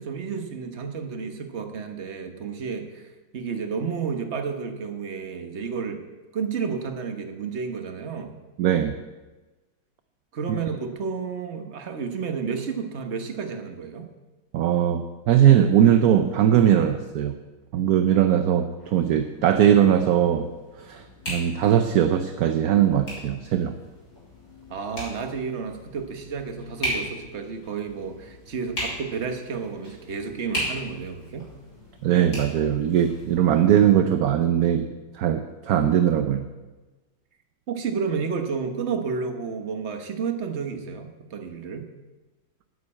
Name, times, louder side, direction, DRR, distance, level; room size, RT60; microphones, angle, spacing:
voice 1, 0.0-6.0 6.3-8.4 10.3-14.1 24.7-31.5 37.7-41.9, right 5 dB, 40° right, 5 dB, 1.3 m, -31 dB
voice 2, 8.6-8.9 14.5-17.3 17.7-20.5 20.8-23.7 32.0-34.9 35.1-36.4, right 10 dB, 65° right, 8 dB, 1.0 m, -20 dB
sound 1, 18.8-34.0, equal, 60° left, 5.2 m, -38 dB
9.3 x 8.6 x 8.5 m, 1.2 s
omnidirectional pair, 1.9 m